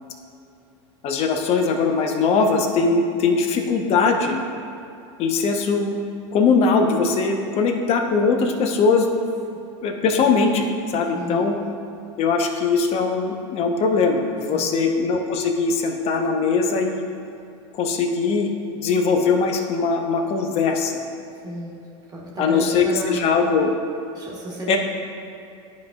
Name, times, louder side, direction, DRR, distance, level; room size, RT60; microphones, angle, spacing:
voice 1, 1.0-4.4 5.2-6.0 6.3-9.1 9.8-11.6 12.2-17.0 17.7-18.5 18.8-21.0 22.4-23.7 24.7-24.8, left 4 dB, 40° left, 4 dB, 0.8 m, -21 dB
voice 2, 11.1-11.5 14.5-14.9 21.4-21.8 22.1-23.6 24.1-24.8, right 2 dB, 25° right, -4 dB, 1.3 m, -33 dB
11.0 x 5.2 x 2.3 m, 2.6 s
hypercardioid pair, 105°, 15 cm